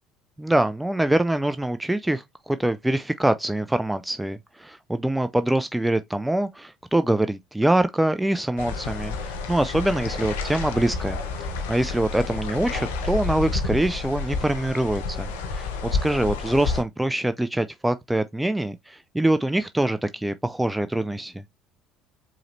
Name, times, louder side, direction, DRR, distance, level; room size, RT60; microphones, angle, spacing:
voice 1, 0.4-21.4, right 1 dB, 10° right, 0.3 m, -24 dB
sound 1, 8.6-16.8, left 4 dB, 75° left, 0.8 m, -30 dB
4.8 x 3.0 x 2.6 m
hypercardioid pair, 60°, 0 cm